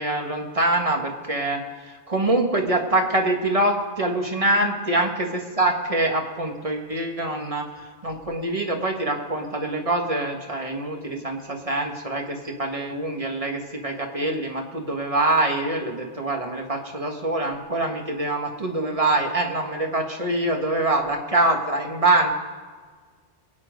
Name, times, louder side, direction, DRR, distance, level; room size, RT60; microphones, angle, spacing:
voice 1, 0.0-22.3, right 2 dB, 30° right, 2 dB, 1.7 m, -24 dB
22.5 x 8.8 x 5.3 m, 1.5 s
omnidirectional pair, 1.1 m